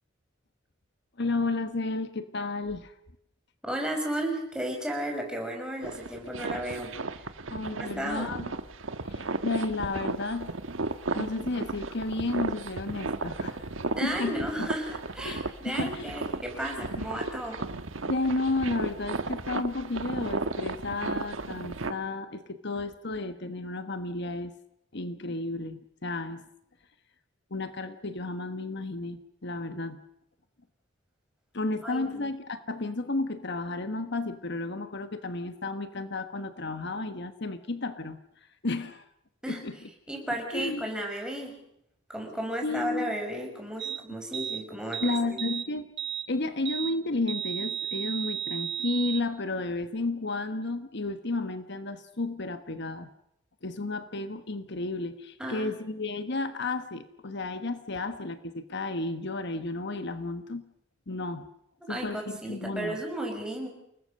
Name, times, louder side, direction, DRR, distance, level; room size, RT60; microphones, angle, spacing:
voice 1, 1.2-2.9 7.5-8.5 9.1-10.5 11.1-13.7 14.0-14.4 15.2-16.1 16.8-17.1 18.0-24.5 24.9-26.4 27.5-30.0 31.5-38.2 38.6-39.1 39.5-39.8 40.5-40.8 42.6-43.1 45.0-45.9 46.3-53.1 53.6-60.6 61.1-61.5 61.9-63.0, left 2 dB, 60° left, 9 dB, 1.3 m, -32 dB
voice 2, 3.6-6.9 7.8-8.3 14.0-17.6 31.8-32.3 39.4-39.6 40.1-41.5 42.1-45.4 55.4-55.7 61.8-63.7, right 1 dB, 5° right, 1 dB, 6.3 m, -34 dB
sound 1, 5.8-21.9, right 3 dB, 80° right, 1.4 m, -35 dB
sound 2, 43.8-44.0 44.3-44.6 44.9-45.7 46.0-46.3 46.7-46.9 47.3-49.2, right 9 dB, 60° right, 1.4 m, -33 dB
29.0 x 20.0 x 6.6 m, 0.76 s
head